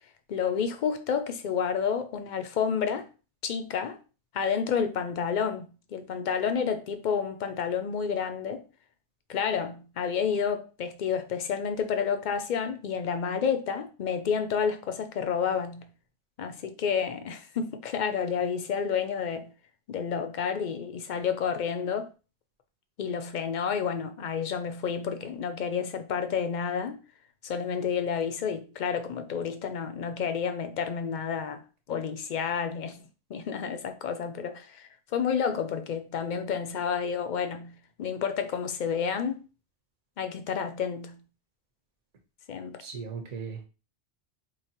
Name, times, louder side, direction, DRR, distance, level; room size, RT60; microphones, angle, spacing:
voice 1, 0.3-3.1 3.4-4.0 4.3-8.6 9.3-15.9 16.4-19.5 19.9-22.1 23.0-27.0 27.4-31.6 31.9-39.4 40.2-41.2 42.5-42.8, left 7 dB, 55° left, 0.5 m, -30 dB
voice 2, 42.8-43.7, right 5 dB, 40° right, 0.9 m, -37 dB
4.6 x 2.6 x 2.9 m
omnidirectional pair, 1.1 m